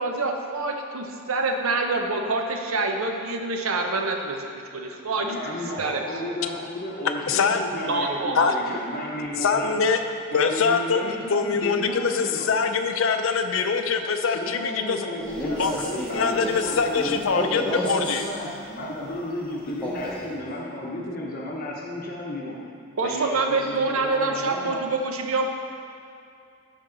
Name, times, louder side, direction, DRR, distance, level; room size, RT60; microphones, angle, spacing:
voice 1, 0.0-4.5 4.7-5.3 5.8-6.0 7.9-8.5 23.0-25.5, right 3 dB, 70° right, 3 dB, 0.8 m, -26 dB
voice 2, 5.1-9.8 10.3-12.5 14.2-22.6 23.0-24.9, left 1 dB, 40° left, -3 dB, 0.9 m, -33 dB
voice 3, 7.3-7.6 8.3-8.6 9.4-10.0 10.3-15.1 15.6-15.7 16.1-18.3, left 5 dB, 65° left, 6 dB, 0.5 m, -23 dB
Male speech man speaking, 15.2-18.3 19.7-20.3, left 1 dB, 5° left, 1.0 m, -31 dB
13.0 x 4.6 x 3.9 m, 2.6 s
head